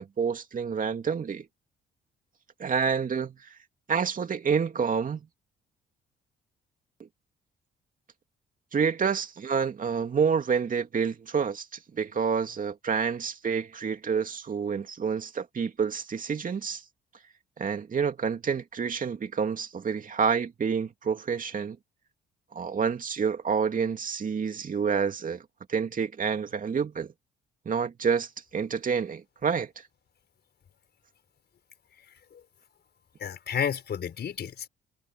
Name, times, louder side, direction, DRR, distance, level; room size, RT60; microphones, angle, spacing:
voice 1, 0.0-1.5 2.6-3.5 3.9-5.2 8.7-11.7 11.9-16.8 17.6-21.8 22.5-25.4 25.7-27.1 27.6-29.8, right 6 dB, 45° right, 2.7 m, -28 dB
voice 2, 33.2-34.7, left 8 dB, 55° left, 5.4 m, -31 dB
cardioid pair, 90°, 20 cm